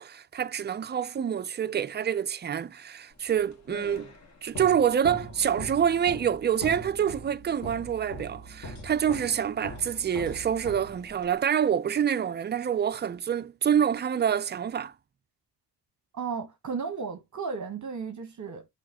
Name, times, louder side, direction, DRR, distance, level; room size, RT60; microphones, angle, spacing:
voice 1, 0.0-4.1 4.4-14.9, right 8 dB, 25° right, 0.3 m, -27 dB
sound 1, 3.3-11.4, equal, 40° left, 1.7 m, -41 dB
voice 2, 16.1-18.7, right 5 dB, 45° right, 1.0 m, -34 dB
6.3 x 3.1 x 2.7 m
cardioid pair, 85°, 42 cm